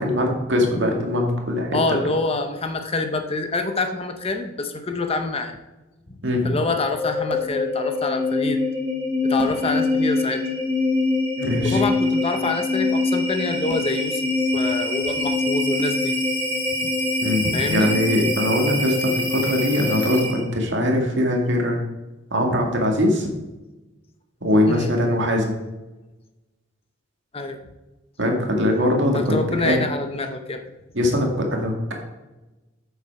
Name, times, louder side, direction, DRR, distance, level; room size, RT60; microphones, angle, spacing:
voice 1, 0.0-1.8 6.2-6.5 11.4-11.8 17.2-21.8 22.3-23.3 24.4-25.5 28.2-29.8 30.9-31.9, left 1 dB, 65° right, 1 dB, 2.0 m, -21 dB
voice 2, 1.7-5.6 6.4-8.6 9.2-10.4 11.6-14.2 14.5-16.2 16.8-16.9 17.5-17.9 24.7-24.9 27.3-27.6 29.1-30.6, left 3 dB, 30° left, 6 dB, 0.8 m, -26 dB
sound 1, 6.6-20.6, left 2 dB, 10° left, 1.4 m, -24 dB
8.7 x 7.0 x 4.8 m, 1.1 s
head